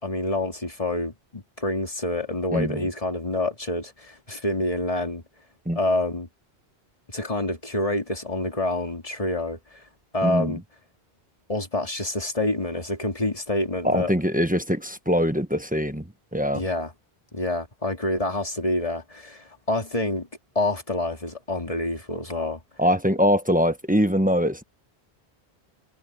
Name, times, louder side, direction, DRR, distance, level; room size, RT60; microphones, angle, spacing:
voice 1, 0.0-5.2 5.7-6.3 7.1-9.8 10.1-10.6 11.5-14.1 16.5-16.9 17.3-20.3 20.5-22.6, left 1 dB, 35° left, 2.8 m, -27 dB
voice 2, 2.5-2.8 5.6-5.8 10.2-10.6 13.8-16.6 22.8-24.6, equal, 10° right, 1.1 m, -23 dB
omnidirectional pair, 1.1 m